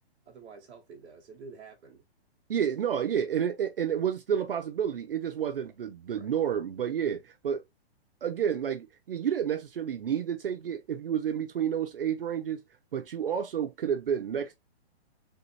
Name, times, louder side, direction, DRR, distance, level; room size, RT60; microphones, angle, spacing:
voice 1, 0.2-2.0 6.1-6.3, right 4 dB, 10° right, 0.9 m, -49 dB
voice 2, 2.5-7.6 8.2-12.6 12.9-14.5, right 8 dB, 60° right, 0.5 m, -30 dB
3.5 x 2.7 x 4.3 m
hypercardioid pair, 180°, 33 cm